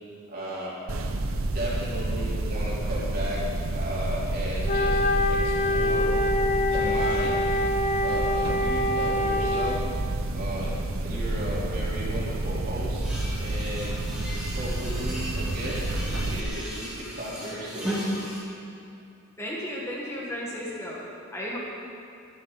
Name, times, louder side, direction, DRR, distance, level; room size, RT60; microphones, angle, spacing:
voice 1, 0.3-0.7 1.5-3.4 3.7-5.0 5.3-6.1 6.6-7.6 8.0-9.8 10.3-10.7 11.0-13.0 13.4-14.0 14.5-17.9, right 1 dB, 45° right, -7 dB, 3.9 m, -35 dB
sound 1, 0.9-16.4, right 2 dB, 80° right, 1.0 m, -29 dB
Wind instrument woodwind instrument, 4.7-9.9, left 1 dB, 35° left, 0.5 m, -25 dB
sound 2, 13.0-18.4, equal, 5° right, 3.4 m, -36 dB
voice 2, 19.4-21.1 21.3-21.6, equal, 15° left, -4 dB, 1.7 m, -34 dB
23.5 x 10.0 x 4.1 m, 2.4 s
head